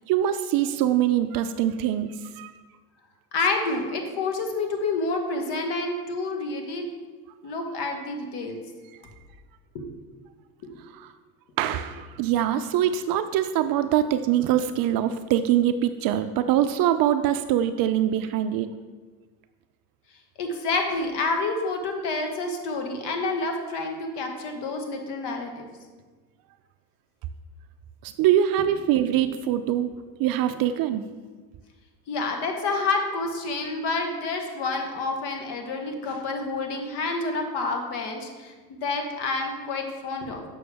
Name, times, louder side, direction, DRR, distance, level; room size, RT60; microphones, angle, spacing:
voice 1, 0.1-2.5 10.9-11.1 11.6-18.7 28.0-29.9 30.2-31.0, right 11 dB, 45° right, 10 dB, 0.5 m, -23 dB
voice 2, 3.3-6.9 7.4-8.6 9.7-10.0 10.6-10.8 20.4-25.6 32.1-40.4, left 3 dB, 55° left, 4 dB, 1.5 m, -28 dB
6.9 x 6.2 x 3.5 m, 1.4 s
hypercardioid pair, 80°, 49 cm